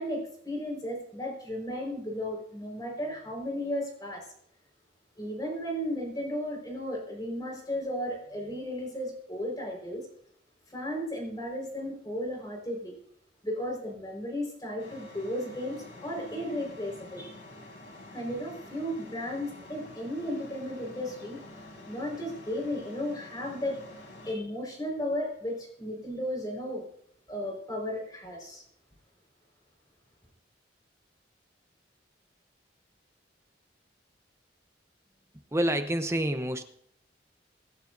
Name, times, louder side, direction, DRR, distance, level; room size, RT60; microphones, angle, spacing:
voice 1, 0.0-4.2 5.2-10.0 10.7-12.9 13.4-17.3 18.1-21.4 21.8-23.8 24.2-26.8 27.3-28.6, left 1 dB, 20° left, 0 dB, 4.7 m, -34 dB
sound 1, 14.8-24.3, left 1 dB, 75° left, 4.0 m, -48 dB
voice 2, 35.5-36.6, right 1 dB, 15° right, 8 dB, 0.7 m, -27 dB
25.5 x 11.5 x 2.6 m, 0.67 s
head